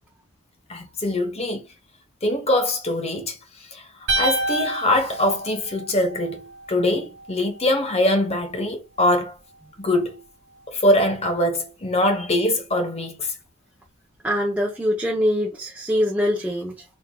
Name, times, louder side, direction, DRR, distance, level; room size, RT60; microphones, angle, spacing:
voice 1, 0.7-1.6 2.2-3.4 3.7-3.9 4.2-9.3 9.8-10.2 10.7-13.3, left 1 dB, 30° left, 1.0 m, -23 dB
sound 1, 4.1-6.3, right 2 dB, 55° right, 1.2 m, -27 dB
voice 2, 14.2-16.8, equal, 5° right, 0.7 m, -23 dB
4.5 x 3.6 x 2.2 m
head